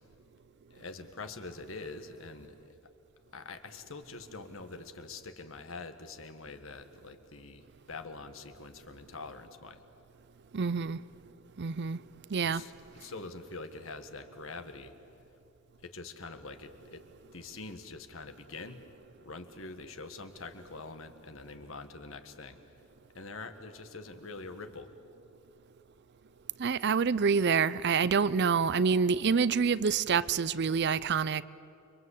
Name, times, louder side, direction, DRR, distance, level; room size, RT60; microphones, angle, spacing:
voice 1, 0.7-2.7 3.3-9.8 12.5-14.9 15.8-17.0 17.3-18.9 19.2-22.6 23.1-24.9, left 3 dB, 70° left, 1.7 m, -45 dB
voice 2, 10.5-11.0 11.6-12.0 12.3-12.6 26.6-31.4, right 5 dB, 55° right, 0.5 m, -27 dB
30.0 x 23.0 x 8.4 m
head